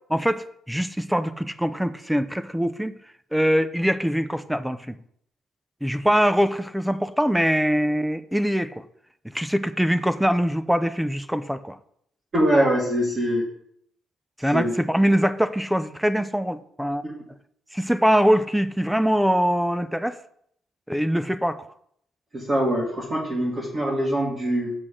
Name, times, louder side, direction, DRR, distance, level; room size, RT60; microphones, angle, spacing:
voice 1, 0.1-3.0 3.3-5.0 5.8-8.8 9.2-11.8 14.4-17.0 17.7-20.2 20.9-21.6, equal, 5° right, 13 dB, 0.5 m, -23 dB
voice 2, 12.3-13.5 14.5-14.7 17.0-17.1 22.3-24.7, equal, 35° right, -5 dB, 1.9 m, -23 dB
7.8 x 6.1 x 3.8 m, 0.69 s
cardioid pair, 90°, 0 cm